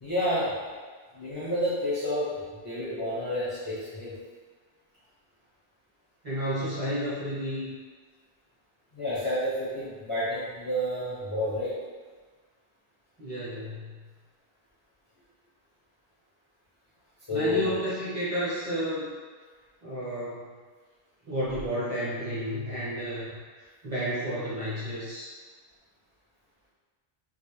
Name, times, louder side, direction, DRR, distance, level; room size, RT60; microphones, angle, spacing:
voice 1, 0.0-0.7 1.2-4.2 8.9-11.7 17.3-17.8, left 1 dB, 35° left, -11 dB, 0.5 m, -30 dB
voice 2, 6.2-7.7 13.2-13.8 17.3-19.1 19.8-20.4 21.3-23.3 23.8-25.3, equal, 40° right, -10 dB, 0.7 m, -31 dB
2.4 x 2.0 x 2.9 m, 1.5 s
omnidirectional pair, 1.1 m